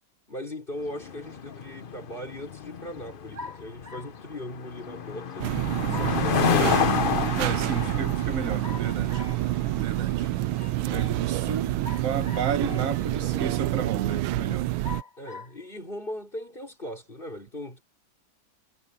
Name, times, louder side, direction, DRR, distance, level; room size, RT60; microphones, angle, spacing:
voice 1, 0.3-5.5 5.8-6.8 11.4-11.7 12.6-13.5 15.2-17.8, left 1 dB, 25° left, 5.0 m, -39 dB
sound 1, 0.8-14.3, left 7 dB, 75° left, 0.4 m, -31 dB
sound 2, 3.3-4.2 5.9-6.7 8.6-9.4 11.8-12.7 13.4-13.5 14.8-15.6, left 3 dB, 20° right, 7.5 m, -42 dB
sound 3, 5.4-15.0, right 17 dB, 85° right, 1.4 m, -28 dB
voice 2, 7.4-9.3 9.7-10.3 10.9-14.7, right 7 dB, 45° right, 1.4 m, -32 dB
omnidirectional pair, 2.2 m